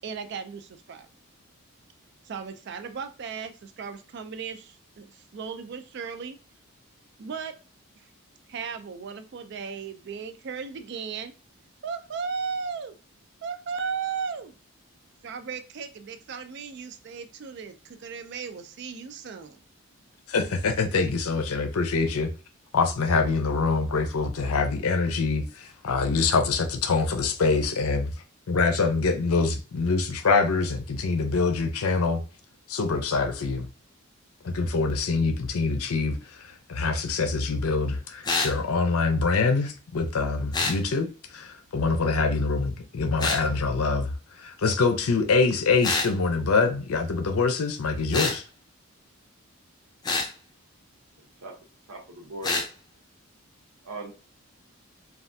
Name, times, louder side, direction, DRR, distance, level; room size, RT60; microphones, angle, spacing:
voice 1, 0.0-1.1 2.2-6.4 7.2-7.6 8.5-11.3 11.8-12.9 13.4-14.5 15.2-19.6, right 6 dB, 50° right, 0.3 m, -36 dB
voice 2, 20.3-22.3 22.7-28.1 28.5-32.2 32.7-33.7 34.4-48.4, left 4 dB, 80° left, 0.6 m, -25 dB
sound 1, 38.2-38.6 40.5-40.8 43.2-43.4 45.8-46.1 48.1-48.4 50.0-50.3 52.4-52.7, left 3 dB, 20° left, 0.4 m, -26 dB
voice 3, 51.9-52.6 53.8-54.1, right 1 dB, 90° right, 0.9 m, -38 dB
3.2 x 2.3 x 2.6 m
head